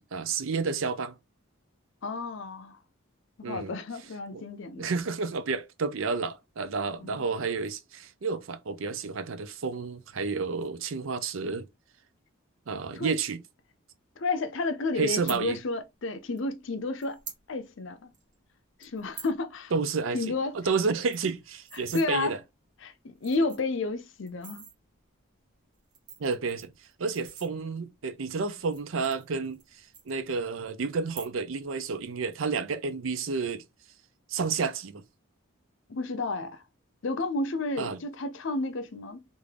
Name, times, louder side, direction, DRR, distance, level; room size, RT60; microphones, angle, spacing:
voice 1, 0.1-1.1 3.4-3.8 4.3-4.4 4.8-11.7 12.7-13.4 15.0-15.6 19.7-22.4 26.2-26.7 27.0-29.6 30.1-33.6 34.3-35.0 37.8-38.0, right 4 dB, 75° right, 0.5 m, -30 dB
voice 2, 2.0-2.8 3.4-4.9 7.0-7.2 12.9-13.1 14.2-17.2 17.5-18.1 18.8-19.7 20.1-20.6 21.7-22.4 22.8-24.7 35.9-36.6 37.0-39.3, left 3 dB, 65° left, 0.5 m, -31 dB
key shaking jingle, 15.1-15.4 16.4-16.5 17.0-17.4 17.8-17.9 18.1-18.4 18.8-19.4 19.7-19.9 20.2-20.3 20.6-20.7 20.9-22.1 22.7-22.8 23.2-23.8 24.3-24.7 25.7-27.9 28.6-29.7 29.9-30.6 31.0-31.6 31.9-32.3, right 6 dB, 55° right, 1.3 m, -45 dB
3.5 x 2.6 x 3.3 m
head